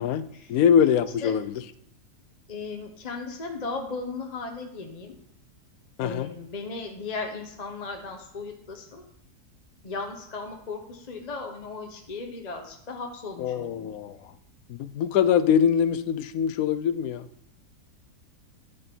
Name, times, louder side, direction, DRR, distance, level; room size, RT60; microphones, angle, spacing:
voice 1, 0.5-1.6 6.0-6.3 13.4-14.2 14.8-17.3, left 8 dB, 70° left, 14 dB, 1.0 m, -23 dB
voice 2, 2.5-5.2 6.0-9.0 9.8-13.9, left 4 dB, 30° left, 3 dB, 0.8 m, -36 dB
12.0 x 5.2 x 4.4 m, 0.75 s
omnidirectional pair, 1.7 m